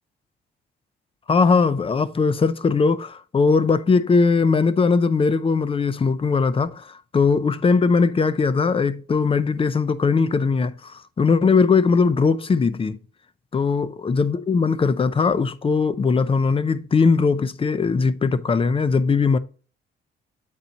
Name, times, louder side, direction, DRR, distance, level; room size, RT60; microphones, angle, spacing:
voice 1, 1.3-13.0 13.5-19.4, left 4 dB, 30° left, 0.6 m, -20 dB
8.4 x 4.2 x 3.9 m
cardioid pair, 90°, 20 cm